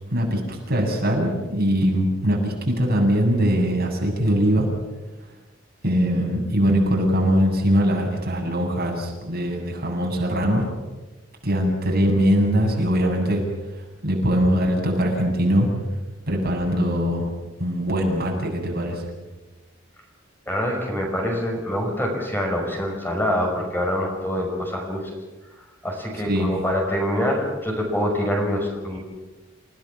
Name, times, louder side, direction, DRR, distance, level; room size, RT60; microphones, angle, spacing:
voice 1, 0.1-4.7 5.8-10.7 11.4-13.4 14.0-15.7 16.3-17.3 17.6-19.0 26.3-26.5, equal, 50° right, -1 dB, 7.9 m, -21 dB
voice 2, 20.5-25.1 25.8-29.0, equal, 10° left, 0 dB, 6.0 m, -25 dB
30.0 x 18.0 x 7.4 m, 1.2 s
head